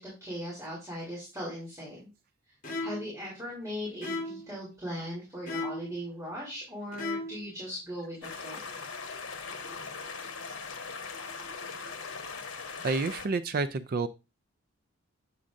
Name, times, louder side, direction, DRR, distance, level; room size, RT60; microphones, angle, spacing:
voice 1, 0.0-2.0 2.8-8.7, equal, 15° right, -8 dB, 3.1 m, -39 dB
sound 1, 2.6-3.1 4.0-4.5 5.5-6.0 6.9-7.5, left 2 dB, 40° left, 1.6 m, -35 dB
sound 2, 8.2-13.3, left 4 dB, 65° left, 1.2 m, -40 dB
voice 2, 12.8-14.1, right 3 dB, 45° right, 13 dB, 0.4 m, -29 dB
8.3 x 7.3 x 2.5 m, 0.28 s
head